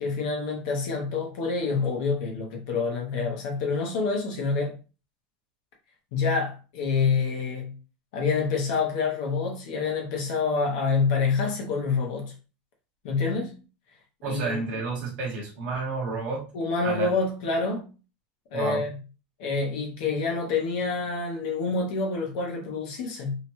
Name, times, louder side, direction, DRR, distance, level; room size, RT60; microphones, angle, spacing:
voice 1, 0.0-4.7 6.1-7.7 8.1-12.3 13.0-13.6 14.2-14.6 16.5-17.9 18.5-18.9 19.4-23.4, left 4 dB, 55° left, 0.8 m, -27 dB
voice 2, 14.2-16.5 16.8-17.1 18.5-18.8, right 3 dB, 35° right, 1.1 m, -30 dB
2.8 x 2.2 x 3.0 m
supercardioid pair, 180°, 5 cm